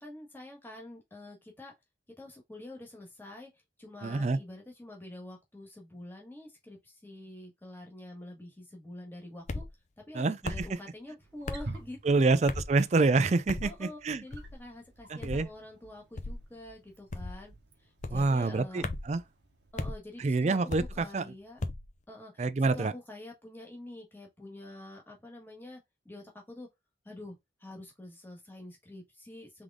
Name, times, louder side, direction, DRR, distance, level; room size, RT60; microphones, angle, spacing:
voice 1, 0.0-1.7 2.2-3.5 3.8-9.6 10.1-12.4 13.6-17.5 17.8-18.8 19.7-21.6 22.1-25.8 26.0-26.7 27.0-29.6, left 1 dB, 10° left, 1.5 m, -47 dB
voice 2, 4.0-4.4 10.1-10.7 12.0-14.2 15.1-15.5 18.1-19.2 20.2-21.2 22.4-22.9, right 3 dB, 40° right, 0.4 m, -27 dB
sound 1, 9.5-9.7 10.4-10.7 11.5-11.7 12.5-12.8 13.5-13.7 14.3-14.6 15.2-15.5 16.2-16.4 17.1-17.4 18.0-18.3 18.8-19.1 19.8-20.0 20.7-21.0 21.6-21.9, left 2 dB, 40° left, 0.6 m, -36 dB
Wild animals, 11.2-19.7, right 2 dB, 80° right, 1.0 m, -50 dB
3.7 x 3.3 x 3.6 m
head